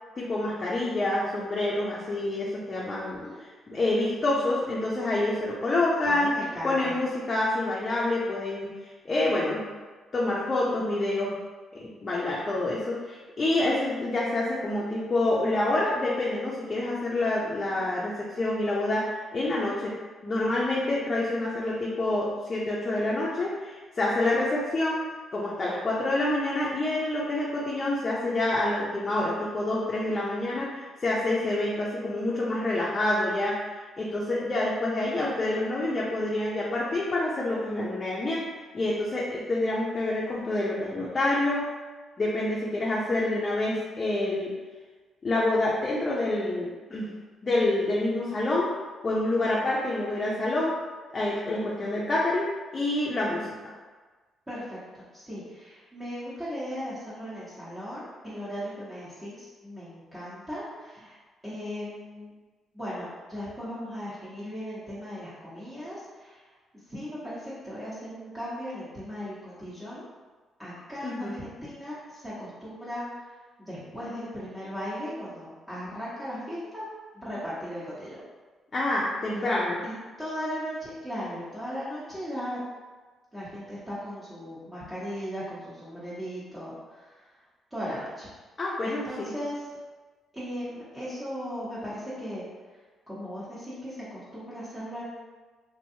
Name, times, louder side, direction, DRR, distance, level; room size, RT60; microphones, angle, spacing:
voice 1, 0.2-6.4 6.6-9.6 10.1-11.3 11.7-19.9 20.2-25.0 25.3-41.7 42.2-44.5 45.2-47.1 47.4-48.7 49.0-50.8 51.1-52.5 52.7-53.7 71.0-71.3 78.7-79.8 88.6-89.3, left 2 dB, 35° left, -5 dB, 0.5 m, -27 dB
voice 2, 3.0-3.4 6.0-6.9 54.5-61.2 61.4-62.3 62.7-66.5 66.9-70.0 70.6-73.3 73.6-76.8 77.1-78.2 79.3-79.5 79.8-82.6 83.3-87.2 87.7-88.3 88.6-89.6 90.3-92.4 93.1-95.0, equal, 15° right, -12 dB, 1.0 m, -37 dB
3.0 x 2.6 x 2.7 m, 1.3 s
cardioid pair, 90°, 0 cm